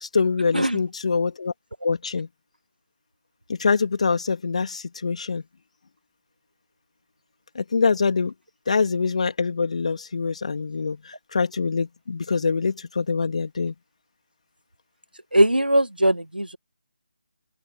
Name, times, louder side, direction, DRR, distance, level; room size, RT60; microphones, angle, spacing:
voice 1, 0.0-1.5 1.8-2.3 3.5-5.4 7.5-8.3 8.7-13.7, left 4 dB, 45° left, 2.9 m, -24 dB
voice 2, 15.3-16.6, right 1 dB, 85° right, 1.6 m, -20 dB
open air
figure-of-eight pair, 155°, 5 cm